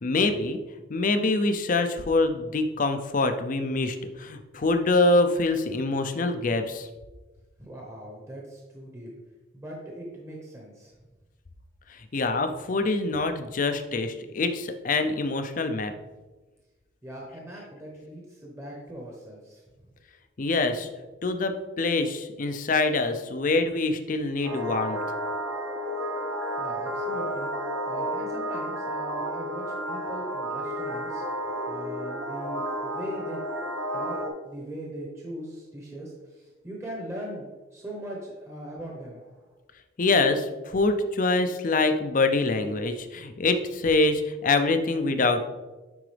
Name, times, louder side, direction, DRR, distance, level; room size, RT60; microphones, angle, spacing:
voice 1, 0.0-0.6 0.9-6.9 12.1-15.9 20.4-20.9 21.2-25.0 40.0-45.4, left 3 dB, 45° left, 8 dB, 0.5 m, -25 dB
voice 2, 7.6-9.1 9.5-10.9 17.0-19.6 26.6-27.5 27.9-31.2 31.7-33.4 33.9-34.2 34.4-39.4, right 1 dB, 15° right, -3 dB, 1.0 m, -40 dB
sound 1, 24.4-34.3, equal, 65° right, 1.1 m, -31 dB
9.7 x 3.9 x 3.4 m, 1.2 s
head